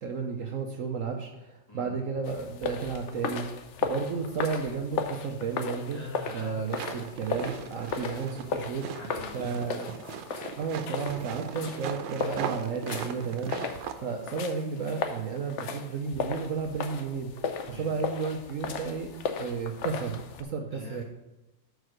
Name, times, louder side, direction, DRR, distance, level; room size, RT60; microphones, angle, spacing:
voice 1, 0.0-6.0 6.3-8.9 9.3-9.8 10.6-17.3 17.8-19.1 19.4-21.0, right 5 dB, 60° right, 3 dB, 0.9 m, -33 dB
sound 1, 2.2-20.4, left 5 dB, 70° left, 0.7 m, -36 dB
voice 2, 5.9-7.0 9.0-10.0 17.6-17.9 20.7-21.0, left 2 dB, 15° left, -5 dB, 2.0 m, -44 dB
sound 2, 6.7-13.9, right 8 dB, 90° right, 1.3 m, -39 dB
6.5 x 4.6 x 6.3 m, 1.0 s
omnidirectional pair, 1.9 m